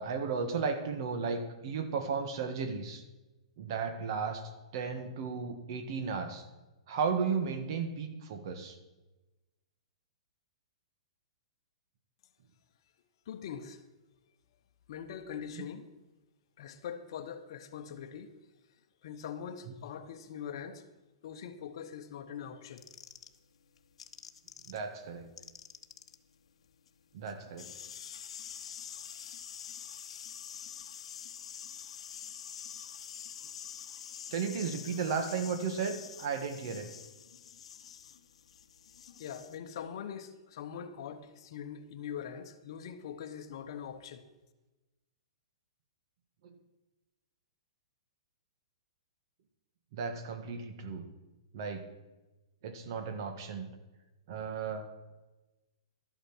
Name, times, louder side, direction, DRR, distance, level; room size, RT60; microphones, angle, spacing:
voice 1, 0.0-3.0 3.6-4.4 4.7-6.4 6.9-8.8 15.5-15.6 24.7-25.3 27.1-27.7 34.3-36.9 46.4-46.5 49.9-51.1 51.5-51.9 52.6-53.7 54.3-54.9, right 5 dB, 45° right, 1.6 m, -34 dB
voice 2, 13.3-13.8 14.9-15.9 16.6-18.3 19.0-20.8 21.2-22.9 39.2-44.3, left 8 dB, 50° left, 1.2 m, -42 dB
sound 1, 22.8-24.8 25.1-39.6, left 8 dB, 70° left, 1.0 m, -46 dB
12.5 x 8.7 x 6.2 m
hypercardioid pair, 160°, 3 cm